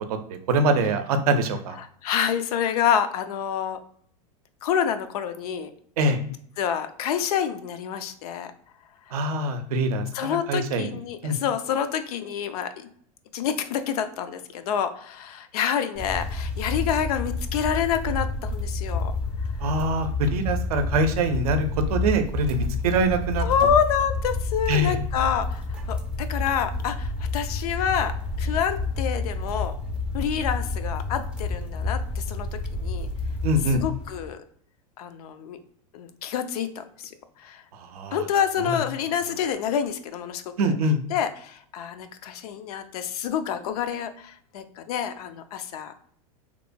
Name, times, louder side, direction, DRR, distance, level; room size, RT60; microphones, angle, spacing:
voice 1, 0.5-1.8 6.0-6.2 9.1-11.0 11.2-11.4 19.6-23.4 24.7-25.0 33.4-33.8 37.7-38.2 38.7-38.8 40.6-41.0, right 2 dB, 80° right, 7 dB, 0.5 m, -24 dB
voice 2, 1.8-3.8 4.6-5.7 6.6-8.5 9.1-9.2 10.1-12.9 13.3-19.2 23.4-29.7 30.1-33.1 33.7-34.4 35.0-35.6 35.9-37.1 37.4-37.6 38.1-40.7 41.1-45.9, left 8 dB, 80° left, 10 dB, 0.4 m, -27 dB
sound 1, 16.0-34.3, left 3 dB, 5° right, 0.3 m, -29 dB
2.9 x 2.1 x 2.5 m, 0.62 s
supercardioid pair, 130°, 19 cm